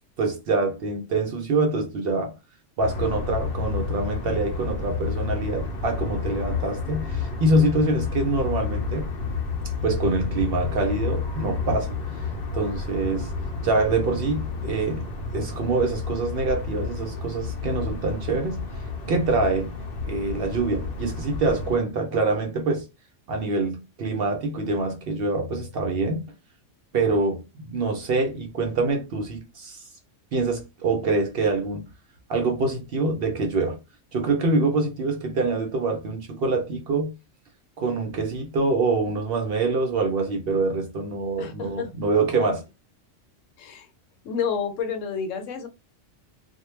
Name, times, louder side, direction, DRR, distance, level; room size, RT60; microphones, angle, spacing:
voice 1, 0.2-2.3 2.8-9.1 9.8-11.9 12.5-13.3 13.6-15.1 15.3-18.7 19.1-19.7 20.0-22.8 23.3-26.3 26.9-29.8 30.3-31.9 32.3-33.8 34.1-37.1 37.8-42.6, right 3 dB, 60° right, 0.6 m, -25 dB
sound 1, 2.8-21.8, left 4 dB, 60° left, 0.6 m, -31 dB
voice 2, 41.4-41.9 43.6-43.9 44.2-45.7, left 6 dB, 80° left, 1.0 m, -29 dB
2.2 x 2.1 x 3.0 m
omnidirectional pair, 1.3 m